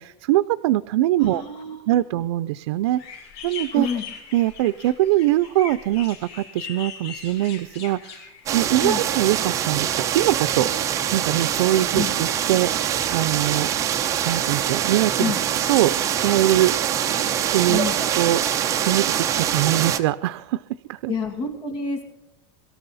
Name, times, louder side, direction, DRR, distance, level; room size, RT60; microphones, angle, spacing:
voice 1, 0.0-1.4 1.9-3.9 4.3-10.7 11.1-13.7 14.2-15.3 15.7-16.7 17.5-17.8 18.2-18.4 18.7-20.6 20.9-21.1, right 15 dB, 85° right, 13 dB, 0.5 m, -22 dB
voice 2, 1.2-1.9 3.7-4.0 8.8-9.0 11.9-12.1 15.2-15.4 17.7-18.0 21.1-22.0, left 5 dB, 40° left, 3 dB, 2.6 m, -28 dB
sound 1, 3.0-8.8, left 7 dB, 70° left, 6.6 m, -40 dB
sound 2, 8.5-20.0, right 10 dB, 20° right, 0.8 m, -24 dB
23.0 x 13.0 x 4.1 m, 0.91 s
supercardioid pair, 175°, 14 cm